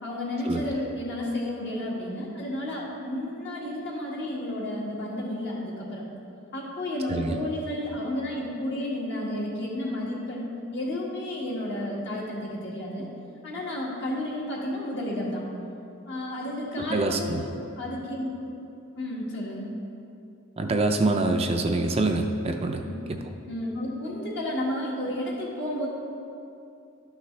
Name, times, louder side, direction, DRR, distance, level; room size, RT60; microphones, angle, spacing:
voice 1, 0.0-6.1 6.5-13.1 13.4-15.5 16.1-18.6 19.0-19.7 22.8-23.0 23.4-25.9, left 1 dB, 60° left, -4 dB, 1.7 m, -32 dB
voice 2, 16.8-17.4 20.6-22.8, right 2 dB, 30° right, 4 dB, 0.4 m, -25 dB
12.0 x 5.8 x 3.2 m, 2.6 s
head